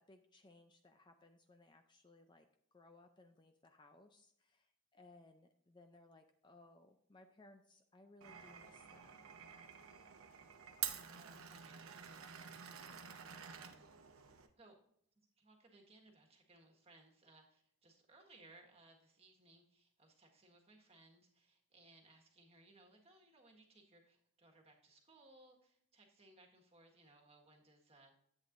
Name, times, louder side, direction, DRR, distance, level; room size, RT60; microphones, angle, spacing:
voice 1, 0.0-2.5 2.7-9.2, left 2 dB, 20° left, 6 dB, 0.5 m, -63 dB
Glass, 8.2-14.5, right 9 dB, 80° right, 0.9 m, -49 dB
voice 2, 11.1-13.9 14.6-14.8 15.4-28.2, right 2 dB, 30° right, 1 dB, 1.6 m, -65 dB
11.0 x 8.3 x 2.6 m, 0.70 s
head